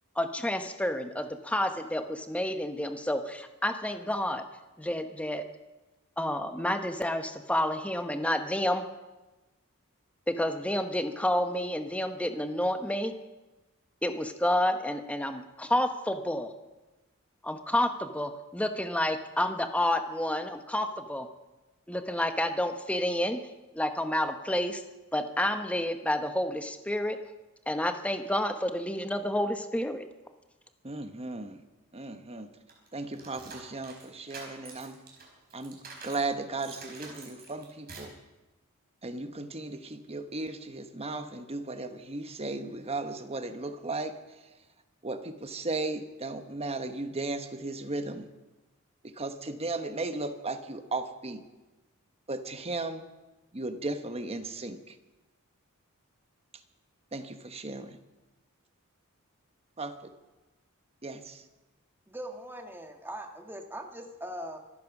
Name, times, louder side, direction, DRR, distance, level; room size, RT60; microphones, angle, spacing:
voice 1, 0.2-4.4 4.8-5.4 6.2-8.9 10.3-13.1 14.0-16.5 17.4-21.3 21.9-23.4 23.7-24.8 25.1-27.2 27.7-30.1, left 1 dB, 5° left, 7 dB, 1.0 m, -29 dB
voice 2, 30.8-31.6 31.9-32.5 32.9-35.0 35.5-35.8 36.0-38.1 39.0-44.2 45.0-48.3 49.0-51.4 52.3-53.0 53.5-54.9 57.1-58.0 59.8-60.1 61.0-61.4, right 2 dB, 25° right, 8 dB, 1.1 m, -36 dB
sound 1, 32.7-36.3 36.6-38.2, right 4 dB, 45° right, 4.4 m, -47 dB
voice 3, 62.1-64.6, right 1 dB, 10° right, 4 dB, 1.5 m, -41 dB
25.0 x 9.3 x 6.0 m, 1.1 s
head